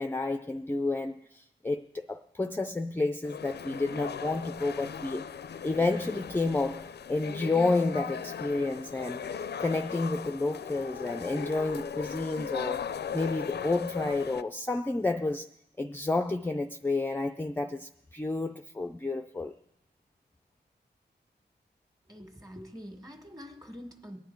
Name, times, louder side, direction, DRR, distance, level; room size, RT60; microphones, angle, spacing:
voice 1, 0.0-5.2 5.6-9.3 9.6-12.8 13.1-15.5 15.8-19.5, left 3 dB, 10° left, 0.4 m, -30 dB
sound 1, 3.2-14.4, left 7 dB, 70° left, 0.4 m, -38 dB
voice 2, 22.1-24.2, equal, 20° right, 1.9 m, -45 dB
23.0 x 9.2 x 4.6 m
wide cardioid pair, 110°, 18 cm